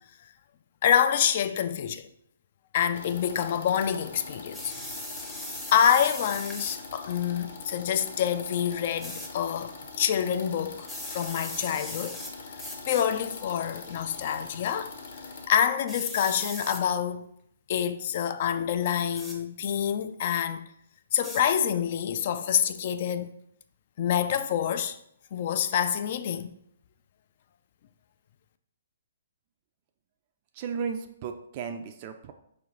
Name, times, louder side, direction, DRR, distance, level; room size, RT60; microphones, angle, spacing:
voice 1, 0.8-2.1 2.7-4.7 5.7-12.2 12.9-14.9 15.5-17.3 17.7-20.7 21.1-23.3 24.0-25.0 25.3-26.5, left 9 dB, 50° left, 0.3 m, -27 dB
sound 1, 2.9-15.5, left 4 dB, 65° left, 0.7 m, -43 dB
sound 2, 4.5-6.8 9.0-9.3 10.8-12.3 12.6-13.1 13.9-14.2 15.9-16.8 19.2-19.4 21.2-21.4, left 1 dB, ahead, 0.6 m, -39 dB
voice 2, 30.5-32.3, right 6 dB, 40° right, 0.3 m, -34 dB
4.8 x 2.5 x 3.1 m
hypercardioid pair, 135°, 0 cm